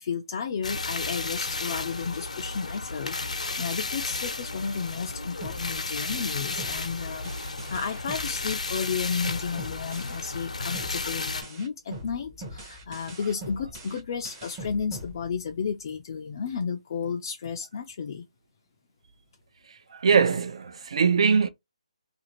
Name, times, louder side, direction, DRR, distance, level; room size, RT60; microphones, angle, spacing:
voice 1, 0.0-18.3, left 6 dB, 35° left, 0.4 m, -33 dB
sound 1, 0.6-11.4, left 3 dB, 85° left, 0.7 m, -33 dB
sound 2, 5.4-10.4 10.7-15.8, right 1 dB, 15° right, 0.7 m, -43 dB
voice 2, 19.7-21.5, right 6 dB, 55° right, 0.5 m, -22 dB
2.5 x 2.4 x 2.9 m
hypercardioid pair, 165°, 4 cm